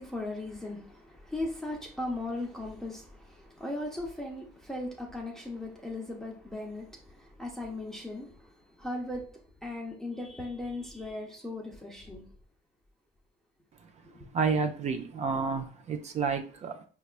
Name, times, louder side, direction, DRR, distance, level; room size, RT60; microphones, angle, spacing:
voice 1, 0.0-12.3 14.1-14.3, left 2 dB, 5° left, 0.7 m, -38 dB
voice 2, 14.3-16.9, right 5 dB, 40° right, 0.5 m, -30 dB
4.7 x 2.3 x 2.4 m
cardioid pair, 110°, 17 cm